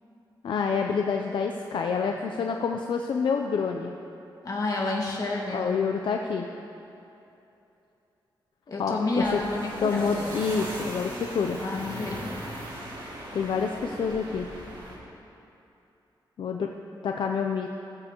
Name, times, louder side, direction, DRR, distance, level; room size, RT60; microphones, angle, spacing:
voice 1, 0.4-3.9 5.5-6.5 8.8-9.4 9.8-11.6 13.3-14.5 16.4-16.7 17.0-17.7, left 5 dB, 70° left, 3 dB, 0.5 m, -27 dB
voice 2, 4.4-5.7 8.7-10.4 11.6-12.3, left 2 dB, 45° left, -3 dB, 1.9 m, -30 dB
sound 1, 9.2-15.0, right 1 dB, 70° right, 2.7 m, -39 dB
18.5 x 7.6 x 3.0 m, 2.8 s
wide cardioid pair, 125°, 8 cm